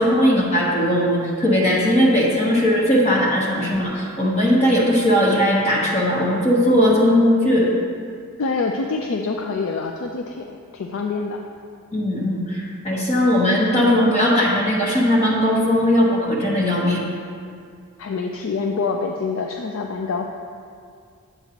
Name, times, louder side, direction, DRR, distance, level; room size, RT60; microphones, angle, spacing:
voice 1, 0.0-7.7 11.9-17.1, equal, 30° left, -4 dB, 1.0 m, -18 dB
voice 2, 8.4-11.4 18.0-20.3, left 4 dB, 65° left, 2 dB, 0.4 m, -26 dB
8.8 x 8.0 x 2.9 m, 2.3 s
head